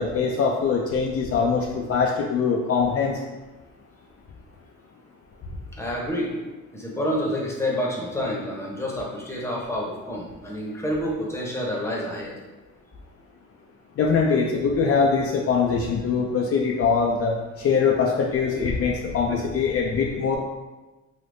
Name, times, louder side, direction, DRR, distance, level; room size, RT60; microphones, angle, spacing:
voice 1, 0.0-3.2 14.0-20.4, left 5 dB, 50° left, -1 dB, 0.4 m, -22 dB
voice 2, 5.7-6.3 6.7-12.3, equal, 10° left, -3 dB, 0.8 m, -28 dB
3.4 x 2.7 x 2.6 m, 1.1 s
cardioid pair, 90°, 30 cm